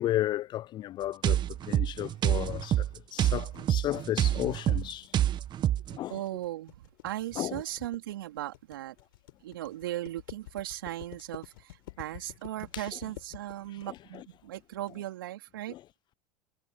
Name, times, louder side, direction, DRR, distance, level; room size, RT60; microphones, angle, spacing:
voice 1, 0.0-5.1 5.9-6.2 7.4-7.6 12.7-12.9 13.9-14.2 15.7-15.8, left 14 dB, 40° left, 0.4 m, -34 dB
sound 1, 1.2-6.0, right 12 dB, 40° right, 1.3 m, -27 dB
sound 2, 3.4-14.9, left 17 dB, 75° left, 6.7 m, -49 dB
voice 2, 6.1-8.9 9.4-15.7, right 14 dB, 80° right, 3.9 m, -37 dB
hypercardioid pair, 85°, 12 cm